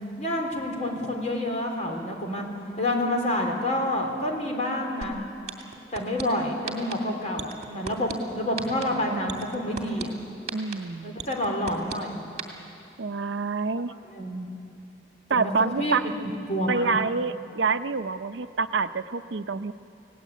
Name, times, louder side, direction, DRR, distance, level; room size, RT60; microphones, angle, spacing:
voice 1, 0.2-2.5 2.8-5.2 5.9-10.1 11.0-12.2 14.1-14.5 15.3-16.1 16.5-17.0, left 1 dB, 40° left, 1 dB, 3.5 m, -28 dB
sound 1, 5.0-5.1 5.5-6.2 6.7-6.9 7.4-8.1 8.6-8.8 9.3-10.0 10.5-10.7 11.2-12.0 12.4-12.5, right 6 dB, 40° right, 2.4 m, -33 dB
voice 2, 8.5-9.0 10.5-11.2 13.0-13.9 15.3-16.0 16.7-19.7, right 4 dB, 75° right, 10 dB, 0.6 m, -27 dB
29.0 x 18.0 x 8.3 m, 2.7 s
head